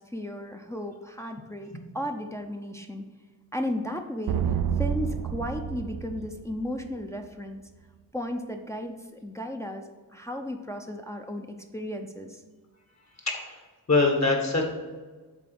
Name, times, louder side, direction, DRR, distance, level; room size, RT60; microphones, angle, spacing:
voice 1, 0.0-3.0 3.5-4.4 4.8-7.6 8.1-12.4, left 1 dB, 10° left, 3 dB, 0.7 m, -35 dB
sound 1, 4.3-7.0, right 8 dB, 85° right, 0.5 m, -29 dB
voice 2, 13.2-13.6 13.9-14.6, left 3 dB, 45° left, 1 dB, 1.8 m, -23 dB
7.3 x 4.1 x 6.1 m, 1.3 s
wide cardioid pair, 65°, 36 cm